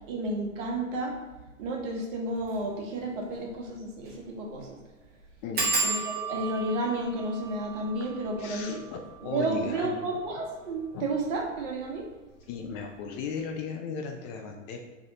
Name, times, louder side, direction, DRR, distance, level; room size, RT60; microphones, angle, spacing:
voice 1, 0.1-1.2 1.6-4.8 5.8-8.8 9.2-12.1, right 2 dB, 45° right, 0 dB, 1.3 m, -32 dB
sound 1, 2.4-2.6 3.0-3.1 3.3-3.4 4.0-4.2 4.5-4.6 5.6-10.8 11.5-12.0 12.3-12.7 12.9-13.0, right 3 dB, 25° right, 1.2 m, -34 dB
voice 2, 5.4-5.7 8.4-10.0 10.9-11.0 12.5-14.8, left 5 dB, 35° left, 3 dB, 0.5 m, -36 dB
3.5 x 3.5 x 3.9 m, 1.1 s
hypercardioid pair, 110°, 38 cm